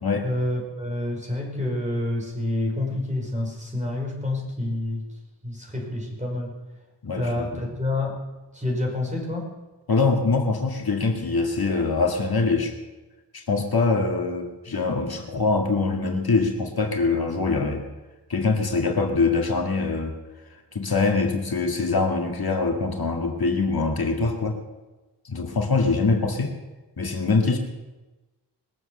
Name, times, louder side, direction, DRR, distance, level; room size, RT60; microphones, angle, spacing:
voice 1, 0.2-5.0 5.4-6.5 7.1-8.1 8.5-9.5, left 1 dB, 15° right, -1 dB, 5.0 m, -28 dB
voice 2, 7.0-7.6 9.9-12.7 13.3-17.8 18.3-20.2 20.7-24.6 25.2-26.5 27.0-27.6, left 4 dB, 60° left, 2 dB, 1.8 m, -23 dB
21.0 x 7.7 x 7.6 m, 1.1 s
wide cardioid pair, 90°, 41 cm